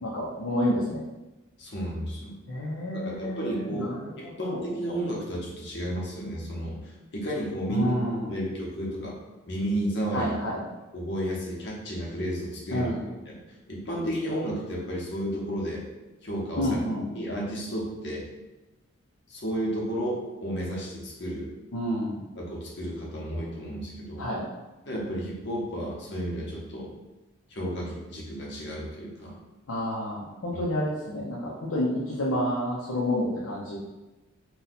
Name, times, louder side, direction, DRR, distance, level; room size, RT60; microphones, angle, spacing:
voice 1, 0.0-1.1 2.5-4.6 7.7-8.4 10.1-10.6 12.7-13.1 16.6-17.1 21.7-22.3 24.2-24.5 29.7-33.8, left 1 dB, 90° left, -5 dB, 0.6 m, -29 dB
voice 2, 1.6-2.4 2.9-9.1 9.5-10.4 10.9-12.9 13.2-13.4 13.7-15.8 16.2-16.8 17.1-18.2 19.3-21.5 22.4-24.3 24.9-26.9 27.5-29.3 30.5-30.7, right 1 dB, 55° left, -4 dB, 0.8 m, -32 dB
2.7 x 2.3 x 4.0 m, 1.1 s
head